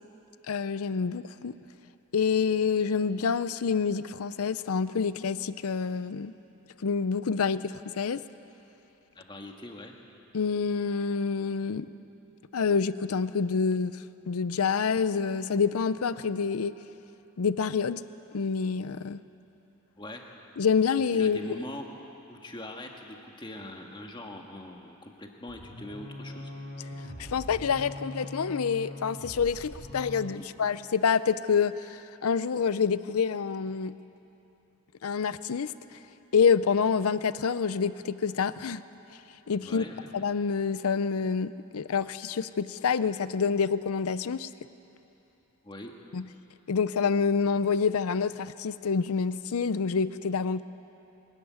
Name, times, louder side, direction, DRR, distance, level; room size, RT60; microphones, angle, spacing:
voice 1, 0.5-1.5 2.1-6.3 6.8-8.2 10.3-11.9 12.5-16.7 17.4-18.0 18.3-19.2 20.6-21.6 26.9-33.9 35.0-35.7 36.3-38.8 39.5-39.8 40.1-44.5 46.1-46.2 46.7-50.6, left 5 dB, 85° left, 15 dB, 0.5 m, -27 dB
voice 2, 9.1-9.9 20.0-20.2 21.1-21.8 22.3-26.5 30.4-30.5 39.6-40.1 45.6-45.9, left 1 dB, 20° left, 2 dB, 1.7 m, -42 dB
sound 1, 25.5-30.4, left 1 dB, 45° left, 5.0 m, -42 dB
23.5 x 14.0 x 9.4 m, 2.9 s
head